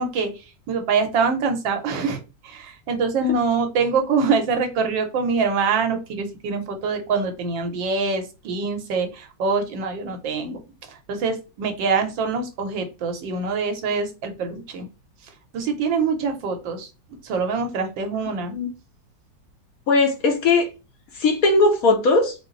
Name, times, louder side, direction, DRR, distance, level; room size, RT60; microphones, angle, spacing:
voice 1, 0.0-10.6 10.9-14.9 15.5-16.9 17.2-18.5, right 4 dB, 85° right, 1.6 m, -24 dB
voice 2, 19.9-20.7 21.2-22.3, left 3 dB, 65° left, 1.0 m, -18 dB
4.5 x 2.0 x 3.8 m
omnidirectional pair, 2.0 m